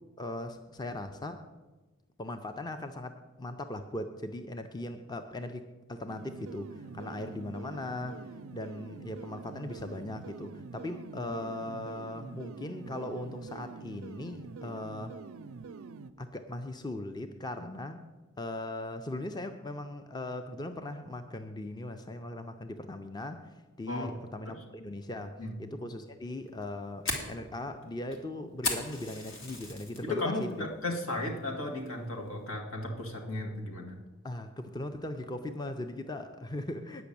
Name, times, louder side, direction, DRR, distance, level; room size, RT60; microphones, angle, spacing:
voice 1, 0.2-1.5 2.2-5.6 5.9-8.3 8.5-15.2 16.2-18.0 18.4-23.5 23.8-30.7 34.2-37.0, left 1 dB, 20° left, 8 dB, 0.5 m, -39 dB
sound 1, 6.1-16.1, right 4 dB, 80° right, 0.5 m, -45 dB
Fire, 26.5-30.0 30.4-30.8 31.2-31.3 31.9-32.2, left 2 dB, 65° left, 2.0 m, -36 dB
voice 2, 30.0-34.0, left 2 dB, 80° left, 1 dB, 1.9 m, -35 dB
9.2 x 5.9 x 8.5 m, 1.2 s
head